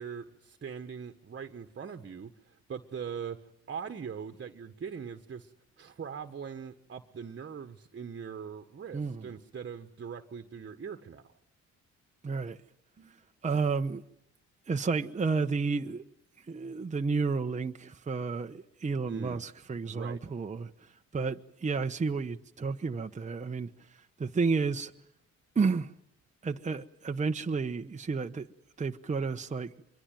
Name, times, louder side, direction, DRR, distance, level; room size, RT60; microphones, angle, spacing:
voice 1, 0.0-11.4 13.0-13.2 19.0-19.4 19.8-20.2, right 7 dB, 40° right, 1.6 m, -41 dB
voice 2, 8.9-9.3 12.2-12.6 13.4-14.0 14.7-16.0 16.5-20.7 21.1-23.7 24.2-24.9 25.5-25.9 26.4-28.5 28.8-29.7, right 4 dB, 25° right, 1.1 m, -31 dB
25.0 x 22.5 x 9.3 m
cardioid pair, 90°, 30 cm